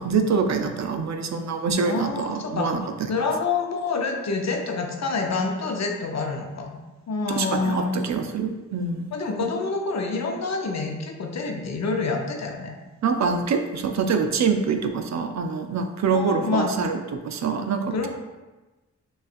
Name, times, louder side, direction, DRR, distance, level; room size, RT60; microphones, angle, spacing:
voice 1, 0.0-3.1 7.3-9.1 13.0-18.1, right 5 dB, 60° right, 5 dB, 0.5 m, -25 dB
voice 2, 1.8-2.7 3.1-6.8 7.1-8.0 9.1-12.8 16.1-16.7 17.9-18.1, left 4 dB, 55° left, 2 dB, 0.7 m, -27 dB
6.3 x 2.4 x 2.5 m, 1.2 s
cardioid pair, 55°, 32 cm